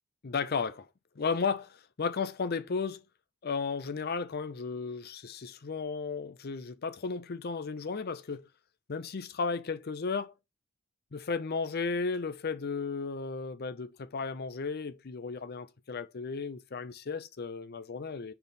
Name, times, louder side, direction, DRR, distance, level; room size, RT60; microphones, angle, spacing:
voice 1, 0.2-0.9 1.2-3.0 3.4-8.5 8.9-10.3 11.1-18.3, left 5 dB, 50° left, 0.6 m, -34 dB
4.6 x 4.0 x 5.2 m
head